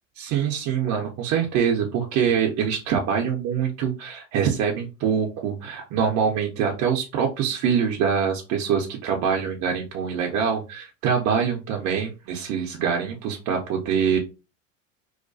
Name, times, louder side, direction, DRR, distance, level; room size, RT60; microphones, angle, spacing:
voice 1, 0.2-14.2, right 7 dB, 40° right, 0 dB, 0.5 m, -24 dB
2.3 x 2.2 x 2.5 m, 0.29 s
hypercardioid pair, 85°, 39 cm